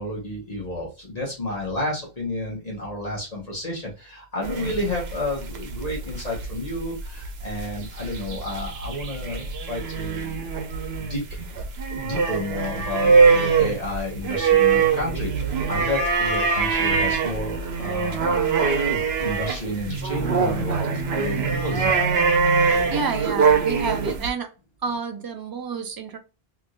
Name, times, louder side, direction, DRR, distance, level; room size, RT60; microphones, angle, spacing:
voice 1, 0.0-10.4 11.0-11.2 11.9-18.3 19.2-22.0, left 1 dB, 40° left, -3 dB, 1.3 m, -31 dB
sound 1, 4.4-24.3, right 5 dB, 80° right, 1.0 m, -23 dB
voice 2, 22.9-24.5 24.8-26.2, right 5 dB, 30° right, 5 dB, 0.5 m, -29 dB
3.5 x 2.9 x 2.4 m, 0.31 s
omnidirectional pair, 1.1 m